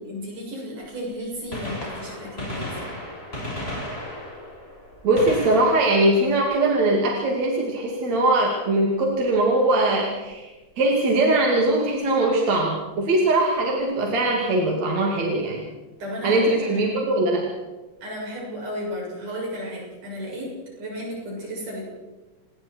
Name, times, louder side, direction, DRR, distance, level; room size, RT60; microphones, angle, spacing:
voice 1, 0.0-2.9 16.0-17.0 18.0-21.9, equal, 75° right, -2 dB, 8.8 m, -34 dB
Gunshot gunfire, 1.4-7.2 9.2-9.3 10.3-10.4 12.0-12.1 13.5-13.6 13.8-13.9, left 1 dB, 15° left, 7.1 m, -35 dB
voice 2, 5.0-10.5 10.8-15.6 16.2-17.4, right 2 dB, 60° right, -1 dB, 3.8 m, -21 dB
29.0 x 21.0 x 4.6 m, 1.2 s
omnidirectional pair, 3.6 m